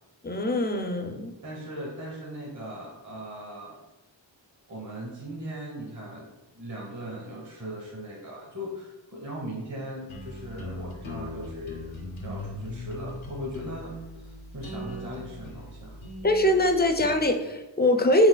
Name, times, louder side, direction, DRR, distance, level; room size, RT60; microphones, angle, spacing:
voice 1, 0.2-1.3 16.2-18.3, left 1 dB, 20° left, 6 dB, 0.4 m, -22 dB
voice 2, 1.4-3.8 4.7-11.9 12.2-16.0, equal, 40° right, -4 dB, 1.1 m, -39 dB
sound 1, 10.1-17.3, left 1 dB, 85° left, 0.8 m, -39 dB
4.8 x 3.8 x 2.2 m, 1.1 s
wide cardioid pair, 45°, 46 cm